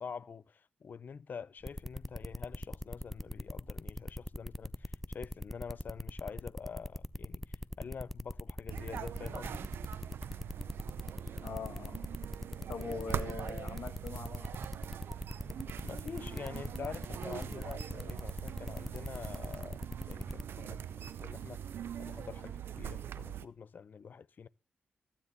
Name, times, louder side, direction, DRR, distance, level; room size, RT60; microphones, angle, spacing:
voice 1, 0.0-9.6 15.8-19.8 20.1-21.6 22.0-24.5, left 6 dB, 55° left, 0.5 m, -46 dB
sound 1, 1.6-20.4, left 1 dB, 5° left, 0.5 m, -41 dB
sound 2, 8.7-23.5, right 9 dB, 85° right, 0.5 m, -42 dB
voice 2, 11.4-12.1 12.7-14.5, left 5 dB, 85° left, 1.4 m, -42 dB
14.0 x 9.8 x 4.0 m
wide cardioid pair, 100°, 4 cm